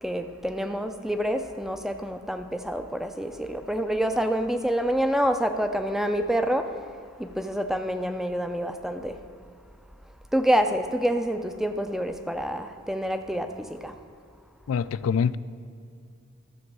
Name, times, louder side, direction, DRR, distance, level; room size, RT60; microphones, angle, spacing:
voice 1, 0.0-6.7 7.2-9.2 10.3-13.9, equal, ahead, 0.4 m, -27 dB
voice 2, 14.7-15.4, left 6 dB, 85° left, 0.3 m, -24 dB
12.5 x 7.1 x 5.3 m
head